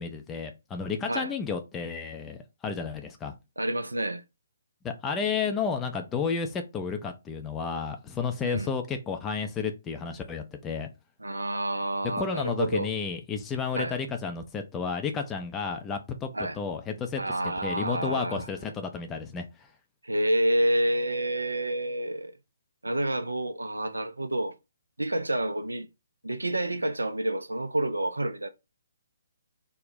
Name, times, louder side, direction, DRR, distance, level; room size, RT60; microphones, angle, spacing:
voice 1, 0.0-3.4 4.8-10.9 12.2-16.3 16.5-17.2 17.6-19.7, left 5 dB, 15° left, 0.4 m, -32 dB
voice 2, 3.6-4.2 8.4-8.7 11.2-12.9 13.7-13.9 16.3-16.6 17.2-18.5 20.0-22.3 22.8-24.5 25.0-25.9 26.2-28.5, right 1 dB, 80° right, 0.3 m, -28 dB
2.5 x 2.1 x 3.9 m
figure-of-eight pair, 135°, 0 cm